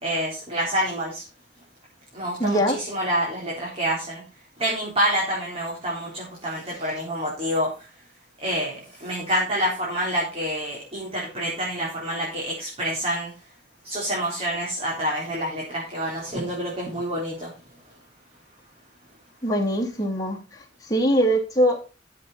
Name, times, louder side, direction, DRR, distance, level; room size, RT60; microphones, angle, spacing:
voice 1, 0.0-1.2 2.1-4.2 4.6-7.9 8.4-13.3 13.8-17.5, equal, 35° right, -4 dB, 4.3 m, -27 dB
voice 2, 2.4-2.7 19.4-20.4 20.9-21.8, equal, 20° left, -1 dB, 3.1 m, -21 dB
13.0 x 7.8 x 4.3 m, 0.31 s
head